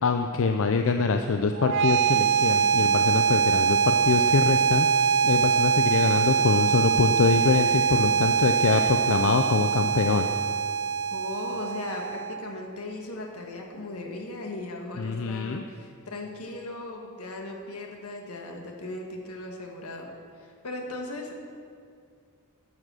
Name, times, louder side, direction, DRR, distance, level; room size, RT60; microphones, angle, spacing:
voice 1, 0.0-10.3 15.0-15.6, left 4 dB, 65° left, 6 dB, 0.5 m, -24 dB
sound 1, 1.5-12.6, right 7 dB, 55° right, 0.4 m, -23 dB
voice 2, 11.1-20.1 20.3-21.3, left 2 dB, 85° left, 1 dB, 1.7 m, -37 dB
11.0 x 7.4 x 6.2 m, 2.2 s
head